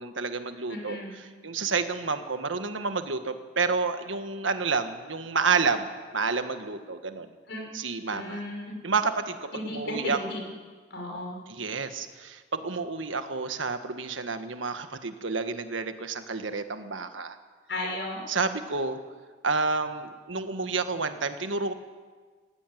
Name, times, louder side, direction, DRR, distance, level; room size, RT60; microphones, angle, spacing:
voice 1, 0.0-5.9 6.1-7.3 7.7-8.4 8.8-10.2 11.5-17.4 18.3-19.0 19.4-21.7, right 4 dB, 85° right, 8 dB, 1.5 m, -29 dB
voice 2, 0.7-1.1 7.5-7.6 8.1-8.7 9.5-10.4 10.9-11.4 17.7-18.2, left 1 dB, 65° left, 0 dB, 5.9 m, -34 dB
19.5 x 15.0 x 9.3 m, 1.5 s
head